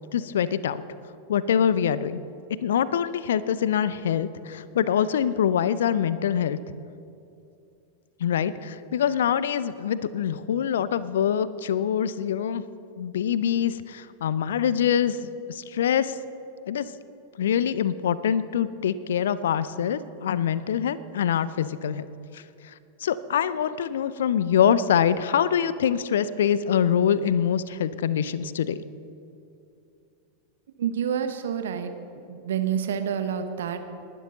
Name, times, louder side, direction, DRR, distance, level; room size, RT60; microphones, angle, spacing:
voice 1, 0.1-0.8 1.3-2.2 2.6-6.6 8.2-12.6 13.0-16.2 16.7-16.9 17.4-22.1 22.3-22.7 23.0-28.8, left 8 dB, 60° left, 16 dB, 0.5 m, -24 dB
voice 2, 30.8-31.9 32.3-33.8, right 8 dB, 60° right, 8 dB, 1.0 m, -28 dB
19.5 x 11.5 x 3.9 m, 2.6 s
figure-of-eight pair, 90°, 0 cm